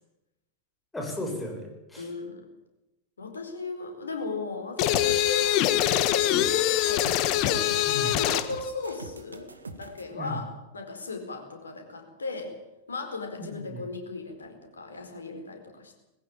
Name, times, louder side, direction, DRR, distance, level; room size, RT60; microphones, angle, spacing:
voice 1, 0.9-2.1 7.9-8.2 10.2-10.4 13.3-13.9, left 1 dB, 10° left, 1 dB, 7.2 m, -35 dB
voice 2, 2.0-2.5 3.2-10.5 10.7-12.5 12.9-16.0, left 3 dB, 75° left, 4 dB, 4.6 m, -36 dB
sound 1, 4.8-8.5, left 13 dB, 40° left, 1.4 m, -24 dB
sound 2, 4.9-10.0, right 3 dB, 75° right, 1.7 m, -43 dB
20.5 x 16.0 x 8.9 m, 0.94 s
figure-of-eight pair, 90°, 0 cm